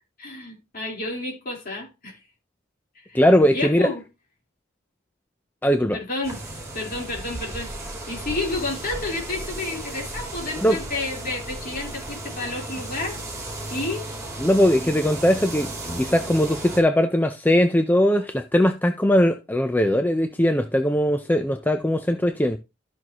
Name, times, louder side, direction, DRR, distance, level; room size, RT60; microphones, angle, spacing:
voice 1, 0.2-2.2 3.0-3.2 3.5-4.0 5.9-6.4 6.7-7.7 8.1-13.2 13.7-14.1, left 2 dB, 45° left, 4.0 m, -30 dB
voice 2, 3.1-3.9 5.6-6.0 10.6-10.8 14.4-22.6, equal, 10° left, 0.5 m, -20 dB
sound 1, 6.2-16.8, right 2 dB, 15° right, 2.9 m, -35 dB
13.5 x 6.2 x 3.0 m
head